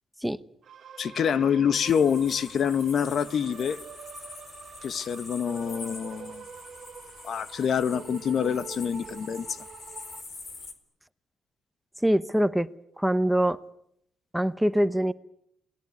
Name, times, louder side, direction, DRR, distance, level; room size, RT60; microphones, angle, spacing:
sound 1, 0.6-10.2, right 8 dB, 55° right, 1.8 m, -45 dB
voice 1, 1.0-3.8 4.8-6.4 7.2-9.6, left 7 dB, 60° left, 1.3 m, -26 dB
sound 2, 1.9-10.7, left 3 dB, 40° left, 4.5 m, -45 dB
voice 2, 12.0-12.7 13.0-13.6 14.3-15.1, equal, 5° right, 1.0 m, -23 dB
28.5 x 20.0 x 9.6 m
cardioid pair, 90°, 0 cm